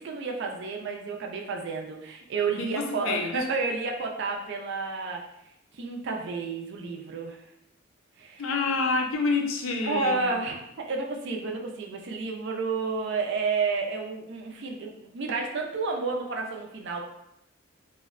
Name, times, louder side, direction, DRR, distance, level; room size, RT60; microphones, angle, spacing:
voice 1, 0.0-5.2 5.8-7.4 8.2-8.4 9.8-17.0, right 4 dB, 60° right, 2 dB, 0.4 m, -31 dB
voice 2, 2.6-3.3 8.4-10.4, left 4 dB, 75° left, 3 dB, 0.4 m, -27 dB
2.6 x 2.1 x 2.4 m, 0.80 s
head